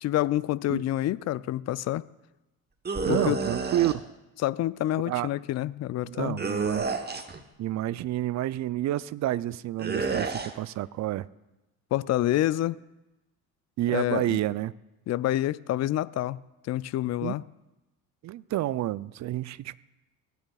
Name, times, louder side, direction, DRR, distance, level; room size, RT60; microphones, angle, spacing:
voice 1, 0.0-2.0 3.1-3.4 4.4-6.4 11.9-12.8 13.9-14.4 15.1-16.4 16.6-17.4, left 14 dB, 40° left, 0.4 m, -27 dB
sound 1, 2.8-3.9 6.4-7.4 9.8-10.5, right 4 dB, 20° right, 1.0 m, -29 dB
voice 2, 3.0-4.0 5.0-5.3 6.1-6.9 7.6-11.3 13.8-14.7 17.2-17.4 18.2-19.8, right 14 dB, 40° right, 0.4 m, -29 dB
18.0 x 9.1 x 2.4 m
hypercardioid pair, 60°, 46 cm